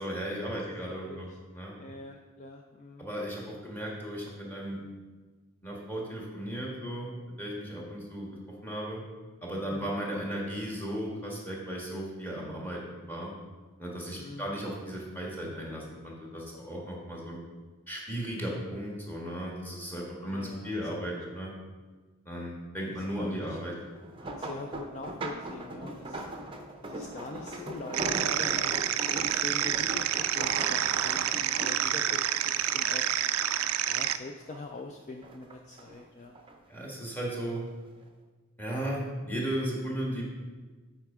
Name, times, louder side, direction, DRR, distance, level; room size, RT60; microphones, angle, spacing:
voice 1, 0.0-1.3 1.5-1.7 3.0-4.8 5.6-8.3 8.6-9.0 9.4-13.3 13.8-17.4 17.9-21.5 22.2-23.7 24.2-24.3 36.7-37.6 38.6-40.2, equal, 10° left, -3 dB, 1.5 m, -35 dB
voice 2, 0.9-1.4 1.8-3.1 9.7-9.9 14.2-14.5 20.2-20.7 21.0-21.2 22.9-23.6 24.4-26.2 26.8-28.7 29.1-33.1 33.9-36.3, left 3 dB, 35° left, 3 dB, 0.4 m, -43 dB
sound 1, 23.9-33.5 33.9-34.8 35.2-36.6 37.3-37.6 38.0-38.1, right 1 dB, 25° right, 0.6 m, -40 dB
sound 2, 27.9-34.2, right 11 dB, 70° right, 0.3 m, -28 dB
7.9 x 4.4 x 4.9 m, 1.3 s
head